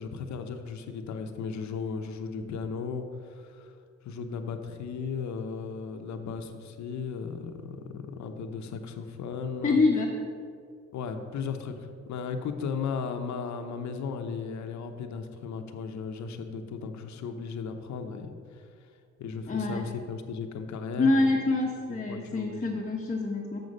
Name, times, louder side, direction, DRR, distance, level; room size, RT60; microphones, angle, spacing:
voice 1, 0.0-3.7 4.0-9.8 10.9-18.6 19.2-21.3 22.1-22.8, left 5 dB, 70° left, 6 dB, 0.9 m, -36 dB
voice 2, 9.6-10.1 19.5-19.8 21.0-23.6, left 3 dB, 25° left, -1 dB, 0.9 m, -26 dB
7.1 x 6.5 x 5.4 m, 2.2 s
cardioid pair, 90°, 30 cm